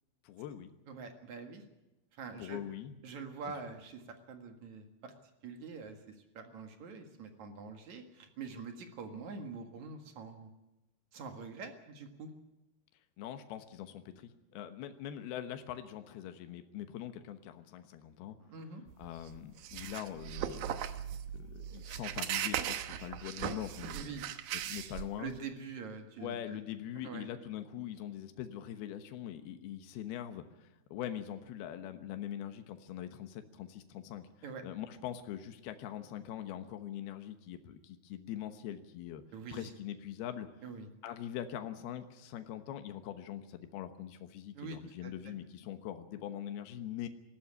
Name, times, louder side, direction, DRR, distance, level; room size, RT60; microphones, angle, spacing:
voice 1, 0.2-0.8 2.4-3.0 13.2-18.4 19.0-20.8 21.3-24.2 24.5-25.3 26.2-34.2 34.6-39.2 39.5-40.5 41.0-47.1, left 11 dB, 80° left, 8 dB, 3.1 m, -43 dB
voice 2, 0.9-1.6 2.2-2.6 3.0-4.0 4.3-5.1 5.4-10.5 11.1-12.3 18.4-18.8 23.9-24.2 25.2-26.6 27.0-27.3 34.4-34.6 39.3-39.7 40.6-40.9 44.5-45.1, right 5 dB, 55° right, 5 dB, 2.7 m, -45 dB
sound 1, 18.9-25.4, right 10 dB, 70° right, 2.6 m, -38 dB
19.0 x 14.5 x 9.8 m, 0.97 s
omnidirectional pair, 4.5 m